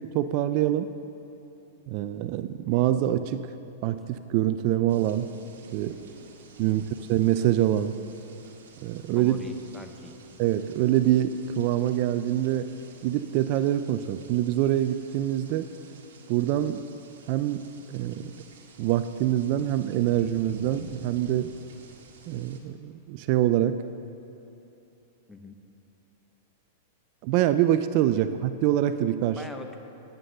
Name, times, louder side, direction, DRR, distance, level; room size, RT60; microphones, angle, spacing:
voice 1, 0.1-0.9 1.9-3.5 3.8-5.3 5.7-6.0 6.6-6.8 7.1-8.0 8.8-9.3 10.4-12.7 13.0-15.7 16.3-16.8 17.3-18.3 18.8-21.5 22.3-23.8 27.2-29.4, right 12 dB, 50° right, 11 dB, 0.4 m, -25 dB
sound 1, 4.9-22.6, right 3 dB, 80° right, 1.7 m, -50 dB
voice 2, 9.1-10.1 25.3-25.6 28.1-28.2 29.3-29.8, left 2 dB, 5° left, 5 dB, 0.8 m, -43 dB
9.3 x 8.9 x 6.5 m, 2.9 s
hypercardioid pair, 130°, 0 cm